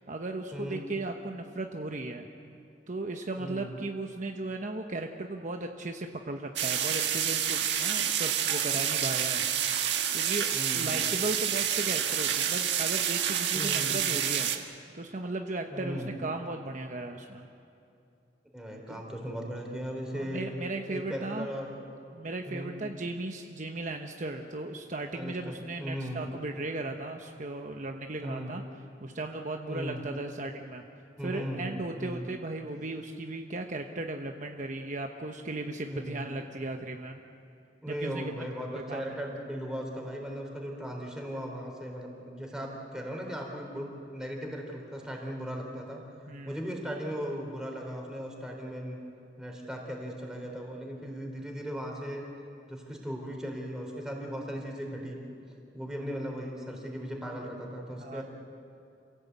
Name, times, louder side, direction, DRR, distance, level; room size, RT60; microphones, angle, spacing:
voice 1, 0.0-2.3 2.9-9.4 10.1-10.5 10.7-14.5 14.9-17.5 18.9-19.0 20.1-21.5 22.2-28.6 29.0-30.8 31.2-37.2 37.9-39.1 46.3-46.6 58.0-58.2, right 2 dB, 45° right, 3 dB, 1.0 m, -36 dB
voice 2, 3.4-3.8 10.5-11.0 13.5-14.0 15.7-16.2 18.5-20.5 20.9-21.8 22.5-22.8 25.1-26.2 28.2-28.5 29.7-30.0 31.2-32.3 35.9-36.5 37.8-43.9 44.1-46.0 46.4-49.0 49.4-52.2 52.7-55.2 55.7-58.2, equal, 5° right, 0 dB, 4.0 m, -37 dB
sound 1, 6.6-14.6, right 9 dB, 75° right, 1.6 m, -28 dB
27.5 x 17.0 x 8.4 m, 2.6 s
head